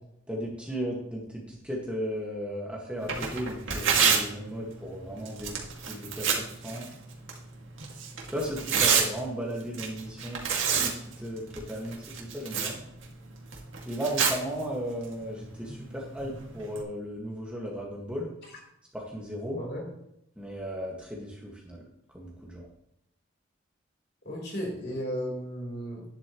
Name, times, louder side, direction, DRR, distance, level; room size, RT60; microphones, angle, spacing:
voice 1, 0.3-5.6 5.9-6.9 8.3-12.8 13.9-18.3 18.9-19.6 20.4-21.8 22.1-22.7, equal, 5° right, -3 dB, 1.8 m, -36 dB
Tearing, 3.0-16.8, right 6 dB, 75° right, 2.2 m, -31 dB
voice 2, 24.2-26.0, equal, 50° left, -2 dB, 4.0 m, -34 dB
12.0 x 10.5 x 3.1 m, 0.77 s
head